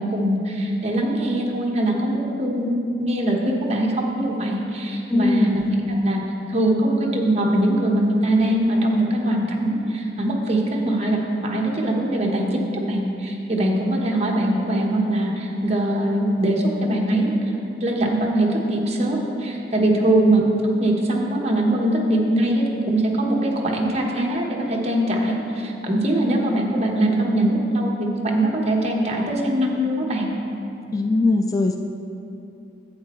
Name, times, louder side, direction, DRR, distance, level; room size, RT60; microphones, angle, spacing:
voice 1, 0.0-5.8 6.0-6.2 6.5-20.5 20.8-30.3, right 1 dB, 35° right, -1 dB, 1.1 m, -22 dB
voice 2, 5.1-5.5 20.0-20.1 30.9-31.8, left 2 dB, 20° left, 4 dB, 0.3 m, -20 dB
11.0 x 8.4 x 3.1 m, 2.8 s
head